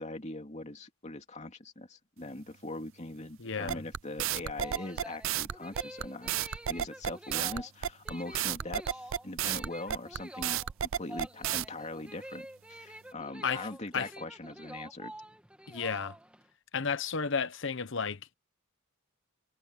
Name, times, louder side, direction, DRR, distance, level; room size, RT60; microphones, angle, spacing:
voice 1, 0.0-10.6 10.9-15.1, left 2 dB, 35° left, 2.7 m, -41 dB
voice 2, 3.4-3.8 13.4-13.7 13.9-14.1 15.7-16.2 16.7-18.4, left 5 dB, 60° left, 1.0 m, -32 dB
sound 1, 3.7-11.7, right 10 dB, 65° right, 0.5 m, -32 dB
sound 2, 4.4-16.5, right 1 dB, 5° right, 2.4 m, -48 dB
head